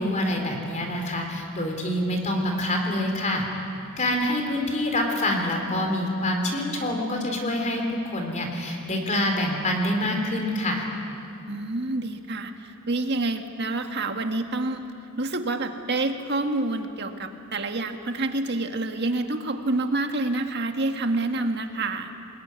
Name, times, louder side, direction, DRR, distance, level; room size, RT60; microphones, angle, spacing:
voice 1, 0.0-3.4 4.0-10.9, left 1 dB, 35° left, 2 dB, 3.5 m, -26 dB
voice 2, 11.5-14.8 15.2-22.1, right 2 dB, 50° right, 5 dB, 1.7 m, -28 dB
24.5 x 20.5 x 9.6 m, 2.6 s
head